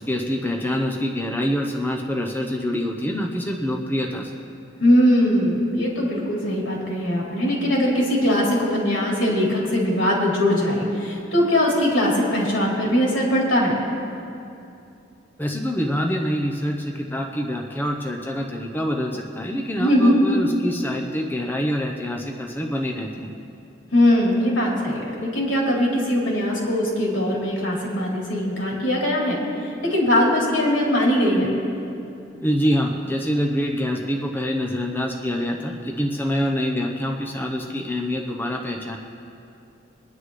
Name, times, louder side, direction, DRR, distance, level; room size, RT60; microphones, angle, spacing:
voice 1, 0.1-4.3 15.4-23.3 32.4-39.0, equal, 10° left, 1 dB, 0.8 m, -25 dB
voice 2, 4.8-13.8 19.8-20.2 23.9-31.5, equal, 85° left, -4 dB, 3.5 m, -21 dB
23.0 x 10.5 x 3.2 m, 2.6 s
head